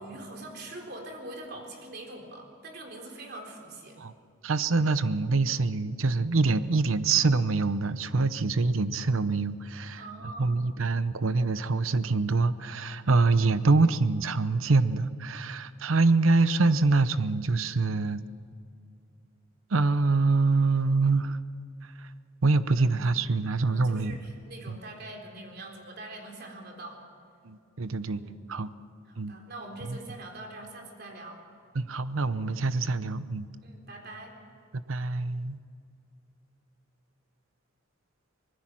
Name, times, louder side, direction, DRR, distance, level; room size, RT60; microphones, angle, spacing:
voice 1, 0.0-4.0 9.9-10.6 22.8-23.1 23.6-27.0 28.1-28.4 29.1-31.4 33.6-34.4, right 2 dB, 55° right, 2 dB, 3.7 m, -43 dB
voice 2, 4.4-10.0 10.4-18.2 19.7-21.4 22.4-24.1 24.7-24.8 27.4-28.2 28.5-28.7 29.2-29.3 29.9-30.0 31.7-33.5 34.7-35.6, right 3 dB, 90° right, 14 dB, 0.8 m, -25 dB
24.5 x 20.0 x 6.1 m, 2.5 s
head